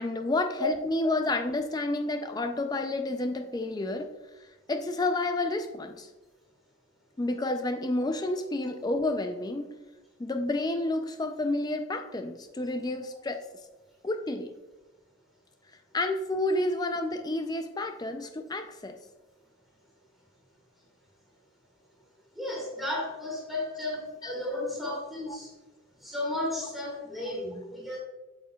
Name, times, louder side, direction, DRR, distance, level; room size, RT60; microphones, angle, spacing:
voice 1, 0.0-4.1 4.7-6.1 7.2-9.7 10.2-13.5 14.0-14.5 15.9-19.0 24.2-24.3 24.9-25.0, left 2 dB, 20° left, 7 dB, 0.3 m, -30 dB
voice 2, 22.3-25.5 26.0-28.0, left 1 dB, ahead, -4 dB, 1.8 m, -34 dB
8.3 x 7.3 x 2.3 m, 1.1 s
head